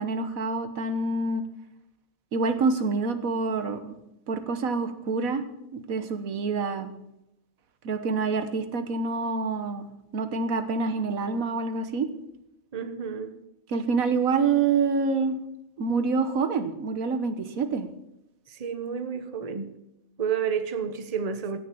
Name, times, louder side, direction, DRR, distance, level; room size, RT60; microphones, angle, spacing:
voice 1, 0.0-1.4 2.3-4.0 4.3-5.4 5.7-6.9 7.8-12.1 13.7-15.4 15.8-17.9, right 4 dB, 90° right, 1.5 m, -27 dB
voice 2, 12.7-13.3 18.6-19.8 20.2-21.6, right 7 dB, 30° right, 1.0 m, -30 dB
16.0 x 7.1 x 7.0 m
omnidirectional pair, 1.4 m